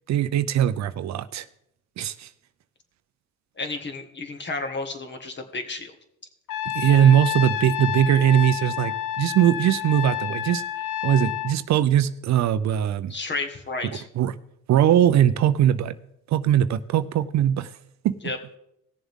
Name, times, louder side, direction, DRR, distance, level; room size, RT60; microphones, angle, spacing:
voice 1, 0.1-1.5 2.0-2.3 6.7-10.6 11.0-13.1 14.2-14.3 14.7-15.9 16.3-17.7 18.0-18.2, right 10 dB, 65° right, 13 dB, 0.6 m, -20 dB
voice 2, 3.6-5.9 13.1-14.0 18.2-18.4, left 3 dB, 35° left, 6 dB, 1.7 m, -32 dB
Trumpet, 6.5-11.6, left 11 dB, 85° left, 0.8 m, -29 dB
17.5 x 7.1 x 3.7 m, 0.79 s
cardioid pair, 90°, 30 cm